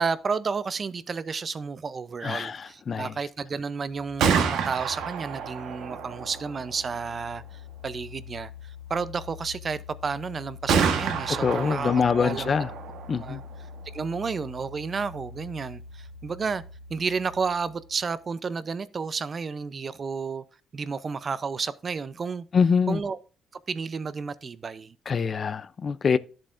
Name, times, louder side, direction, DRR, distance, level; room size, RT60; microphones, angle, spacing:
voice 1, 0.0-12.6 13.2-13.4 13.9-16.6 16.9-20.4 20.7-22.4 22.9-23.2 23.7-25.0, right 5 dB, 40° right, 0.5 m, -31 dB
voice 2, 2.2-2.6 2.9-3.1 11.4-12.7 13.1-13.4 22.5-23.0 25.1-26.2, left 6 dB, 45° left, 0.4 m, -24 dB
Gunshot gunfire, 4.0-17.8, right 5 dB, 85° right, 1.2 m, -32 dB
11.0 x 7.5 x 2.5 m
cardioid pair, 90°, 0 cm